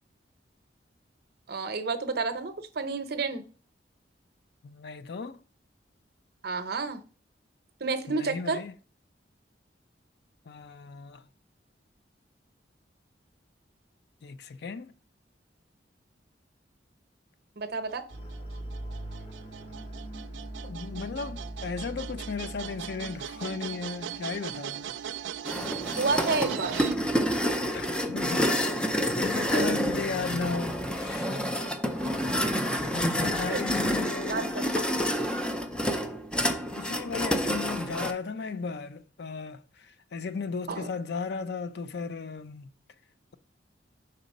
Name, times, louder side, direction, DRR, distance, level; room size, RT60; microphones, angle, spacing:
voice 1, 1.5-3.4 6.4-7.0 7.8-8.6 17.6-18.1 26.0-26.8 33.5-33.6 34.3-34.9 40.7-40.9, right 4 dB, 60° right, 0.7 m, -30 dB
voice 2, 4.6-5.4 8.1-8.7 10.5-11.2 14.2-14.9 20.6-25.0 27.7-31.4 32.9-34.4 36.8-42.7, left 4 dB, 60° left, 0.4 m, -35 dB
sound 1, 17.9-26.9, right 9 dB, 85° right, 0.4 m, -39 dB
sound 2, 18.1-26.4 26.7-26.8, right 1 dB, 35° left, 1.6 m, -42 dB
sound 3, 25.4-38.1, equal, 5° left, 0.4 m, -28 dB
5.5 x 4.0 x 5.2 m
head